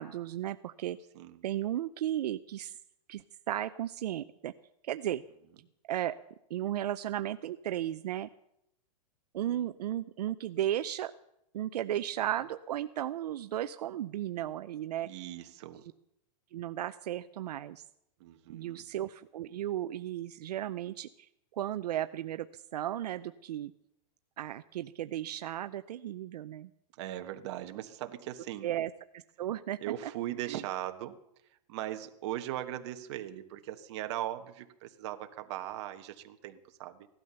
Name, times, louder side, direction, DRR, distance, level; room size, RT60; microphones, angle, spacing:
voice 1, 0.0-1.0 1.4-2.8 3.1-4.5 4.8-5.2 5.9-6.2 6.5-8.3 9.3-11.1 11.5-15.1 16.5-17.8 18.5-23.7 24.4-26.7 28.6-29.8 30.5-30.6, right 12 dB, 75° right, 11 dB, 0.6 m, -35 dB
voice 2, 15.0-15.8 18.2-18.8 26.9-28.7 29.8-31.2 31.7-37.1, right 13 dB, 45° right, 7 dB, 1.3 m, -39 dB
16.5 x 12.0 x 6.8 m, 0.81 s
supercardioid pair, 165°, 21 cm